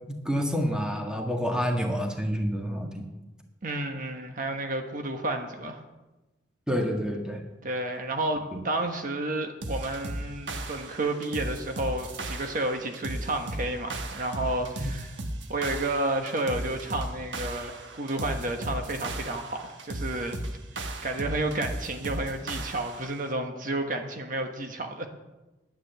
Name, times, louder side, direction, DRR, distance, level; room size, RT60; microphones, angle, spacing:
voice 1, 0.1-3.0 6.7-7.4 14.8-14.9, equal, 5° right, 2 dB, 1.6 m, -28 dB
voice 2, 3.6-5.8 7.6-15.2 15.5-20.4 20.8-25.1, right 2 dB, 45° right, 4 dB, 1.2 m, -31 dB
sound 1, 9.6-23.2, right 1 dB, 75° right, 1.4 m, -36 dB
11.0 x 9.7 x 8.0 m, 1.1 s
head